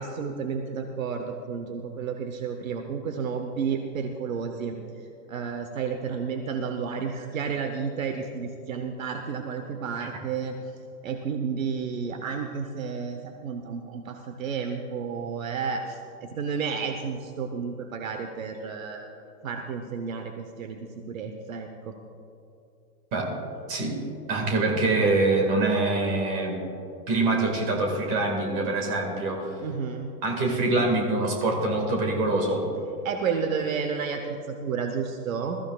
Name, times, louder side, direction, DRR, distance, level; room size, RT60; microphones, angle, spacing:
voice 1, 0.0-4.8 5.3-10.5 11.0-19.1 19.4-20.8 21.1-21.9 29.6-30.1 33.0-35.6, right 6 dB, 55° right, 5 dB, 1.0 m, -31 dB
voice 2, 24.3-26.6 27.1-29.5 30.2-32.6, right 2 dB, 25° right, 1 dB, 1.9 m, -24 dB
21.0 x 14.0 x 2.4 m, 2.8 s
hypercardioid pair, 175°, 49 cm